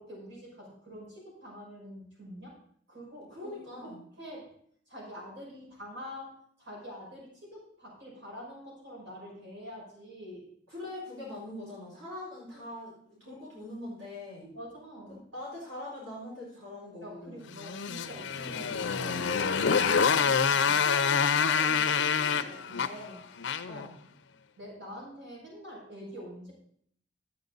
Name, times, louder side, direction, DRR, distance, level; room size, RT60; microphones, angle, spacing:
voice 1, 0.0-2.6 2.9-4.5 4.9-10.5 12.5-12.6 14.4-15.2 17.0-23.3 24.6-26.5, equal, 65° right, -4 dB, 5.7 m, -46 dB
voice 2, 3.3-4.0 10.7-14.5 15.1-17.5 23.6-24.0, left 1 dB, 90° right, -6 dB, 4.6 m, -42 dB
Motorcycle, 17.5-23.9, left 6 dB, 75° left, 0.6 m, -27 dB
11.5 x 8.8 x 4.0 m, 0.63 s
head